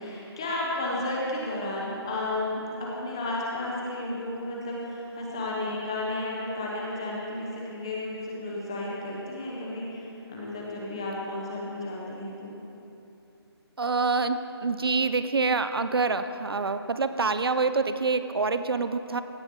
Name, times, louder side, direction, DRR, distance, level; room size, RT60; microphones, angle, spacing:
voice 1, 0.0-12.6, left 2 dB, 10° left, -4 dB, 0.7 m, -33 dB
voice 2, 13.8-19.2, right 4 dB, 65° right, 10 dB, 0.5 m, -26 dB
16.5 x 7.9 x 3.6 m, 2.8 s
figure-of-eight pair, 175°, 14 cm